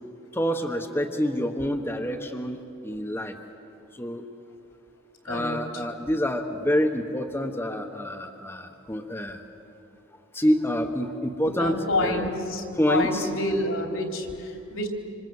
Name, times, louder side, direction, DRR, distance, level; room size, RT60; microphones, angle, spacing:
voice 1, 0.3-3.3 3.9-4.2 5.2-9.4 10.3-12.3 12.8-13.3, equal, 10° left, 4 dB, 1.2 m, -27 dB
voice 2, 5.3-5.8 11.4-14.9, left 1 dB, 75° left, 2 dB, 3.7 m, -28 dB
27.0 x 26.5 x 7.9 m, 2.7 s
head